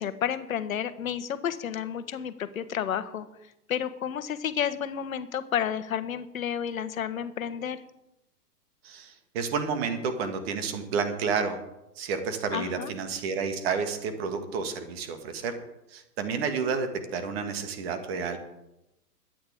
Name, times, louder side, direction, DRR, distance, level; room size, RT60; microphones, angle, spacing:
voice 1, 0.0-3.3 3.7-7.8 12.5-12.9, left 9 dB, 60° left, 13 dB, 1.3 m, -31 dB
voice 2, 8.8-11.6 12.0-15.5 15.9-18.4, right 5 dB, 40° right, 7 dB, 2.1 m, -30 dB
22.5 x 9.4 x 3.6 m, 0.91 s
figure-of-eight pair, 115°, 47 cm